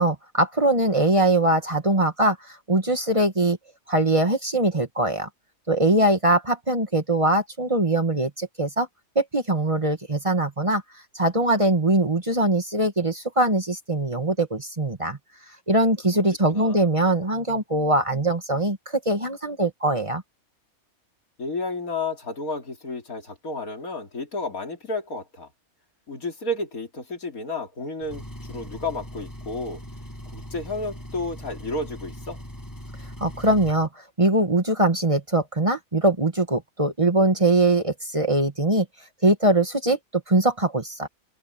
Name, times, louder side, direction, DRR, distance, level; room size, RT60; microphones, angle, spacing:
voice 1, 0.0-3.6 3.9-5.3 5.7-8.9 9.2-10.8 11.2-15.2 15.7-20.2 33.2-33.9 34.2-38.9 39.2-41.1, right 1 dB, 25° right, 1.8 m, -22 dB
voice 2, 16.5-16.9 21.4-25.5 26.1-29.8 30.3-32.4, left 2 dB, 85° left, 3.7 m, -32 dB
Engine, 28.0-33.9, equal, 15° left, 7.3 m, -40 dB
omnidirectional pair, 1.5 m